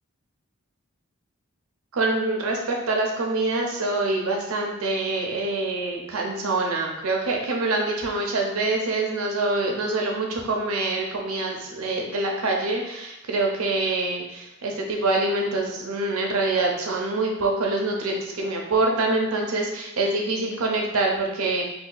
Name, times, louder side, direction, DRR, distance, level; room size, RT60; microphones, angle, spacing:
voice 1, 1.9-21.6, right 2 dB, 80° right, 0 dB, 0.6 m, -25 dB
2.7 x 2.2 x 3.9 m, 0.89 s
head